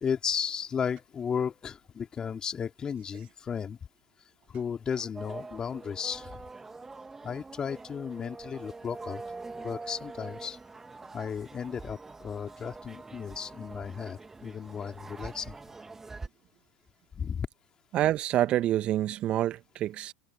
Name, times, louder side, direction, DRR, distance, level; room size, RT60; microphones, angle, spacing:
voice 1, 0.0-3.8 4.5-6.3 7.2-9.2 9.6-10.6 11.1-15.5 17.1-17.5, left 7 dB, 25° left, 3.5 m, -34 dB
sound 1, 5.2-16.3, right 3 dB, 10° right, 2.2 m, -44 dB
voice 2, 17.9-20.1, right 13 dB, 35° right, 1.8 m, -27 dB
figure-of-eight pair, 85°, 3 cm